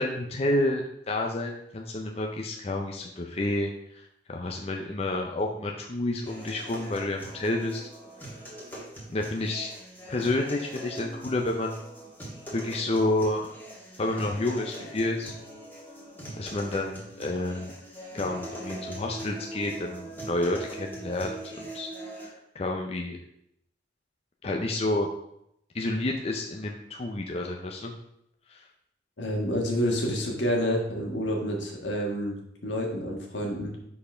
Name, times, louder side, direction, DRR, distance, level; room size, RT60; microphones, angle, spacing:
voice 1, 0.0-7.8 9.1-9.7 10.1-11.8 12.5-13.5 14.0-15.3 16.4-17.7 18.1-21.4 21.7-21.9 22.2-23.2 24.4-25.1 25.7-27.9 28.5-28.6, left 2 dB, 35° left, 1 dB, 0.6 m, -29 dB
sound 1, 6.3-22.3, right 1 dB, 10° left, 1.7 m, -42 dB
voice 2, 29.2-33.8, equal, 80° left, 0 dB, 1.7 m, -29 dB
5.5 x 4.3 x 5.5 m, 0.77 s
head